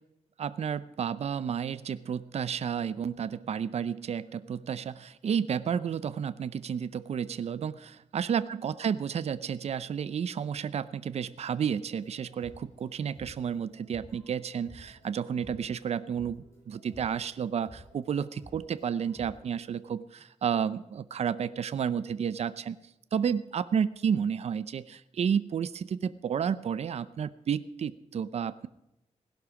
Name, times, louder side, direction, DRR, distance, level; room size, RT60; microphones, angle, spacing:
voice 1, 0.4-22.8 23.1-28.7, right 7 dB, 60° right, 15 dB, 0.6 m, -31 dB
sound 1, 11.9-19.7, left 1 dB, 25° left, 5.6 m, -53 dB
17.0 x 11.5 x 4.9 m, 0.88 s
wide cardioid pair, 135°, 12 cm